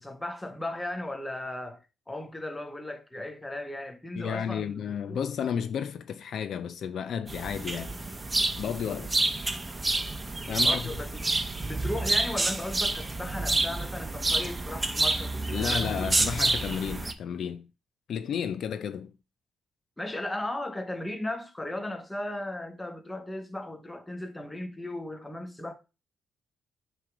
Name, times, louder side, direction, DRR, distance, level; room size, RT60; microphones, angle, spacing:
voice 1, 0.0-1.8 2.1-5.2 10.5-11.3 11.7-16.1 20.0-25.7, left 1 dB, 10° left, 1.1 m, -36 dB
voice 2, 4.1-7.9 8.6-9.2 10.5-11.0 15.5-17.7 18.1-19.1, left 8 dB, 65° left, 0.5 m, -32 dB
sound 1, 7.3-17.1, right 2 dB, 15° right, 0.7 m, -28 dB
9.2 x 3.3 x 5.0 m
cardioid pair, 110°, 0 cm